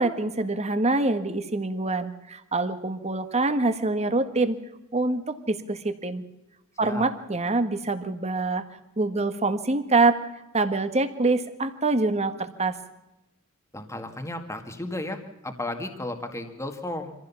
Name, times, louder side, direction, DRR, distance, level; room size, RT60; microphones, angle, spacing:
voice 1, 0.0-4.6 4.9-6.2 6.8-8.6 9.0-10.2 10.5-12.7, right 3 dB, 30° right, 10 dB, 1.6 m, -25 dB
voice 2, 13.7-17.1, left 1 dB, 15° left, 5 dB, 1.9 m, -34 dB
25.0 x 15.5 x 7.1 m, 0.95 s
head